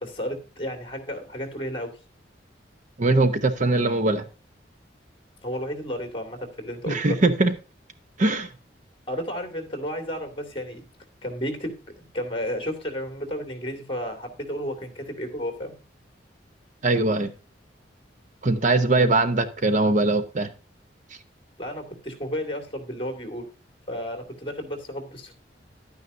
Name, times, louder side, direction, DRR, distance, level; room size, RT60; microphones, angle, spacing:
voice 1, 0.0-2.0 5.4-7.2 9.1-10.8 11.2-11.7 12.0-15.7 21.6-23.5 23.9-25.3, equal, 30° left, 2.5 m, -32 dB
voice 2, 3.0-4.2 6.9-7.5 8.2-8.5 16.8-17.3 18.4-20.5, right 2 dB, 45° right, 0.9 m, -21 dB
11.5 x 9.5 x 2.6 m
head